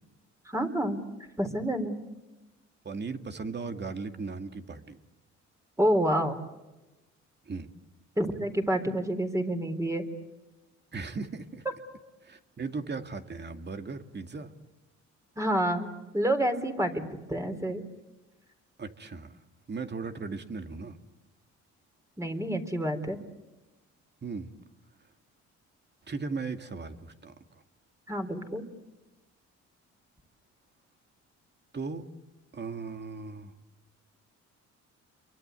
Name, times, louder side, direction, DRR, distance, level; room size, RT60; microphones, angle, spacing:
voice 1, 0.5-1.0 1.4-2.0 5.8-6.3 8.2-10.1 15.4-17.8 22.2-23.2 28.1-28.6, right 1 dB, 10° right, 5 dB, 3.9 m, -28 dB
voice 2, 2.8-5.0 7.4-7.7 10.9-11.6 12.2-14.5 18.8-19.4 19.7-21.0 24.2-24.5 26.1-27.4 31.7-32.1 32.5-33.5, right 4 dB, 35° right, 7 dB, 2.3 m, -37 dB
29.0 x 23.5 x 8.3 m, 1.0 s
cardioid pair, 90°, 30 cm